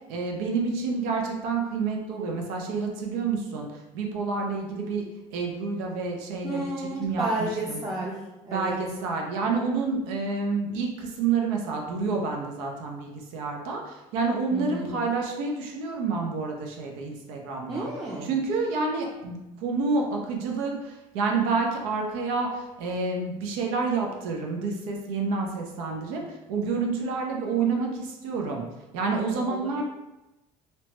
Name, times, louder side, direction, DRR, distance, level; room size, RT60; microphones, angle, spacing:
voice 1, 0.1-5.1 5.3-7.8 8.5-17.9 18.2-28.6 28.9-29.8, right 4 dB, 80° right, 1 dB, 0.6 m, -29 dB
voice 2, 6.4-8.1 8.4-8.8 14.5-15.1 17.7-18.3 29.4-29.8, right 1 dB, 20° right, -5 dB, 0.6 m, -32 dB
2.9 x 2.1 x 3.0 m, 1.0 s
supercardioid pair, 75°, 18 cm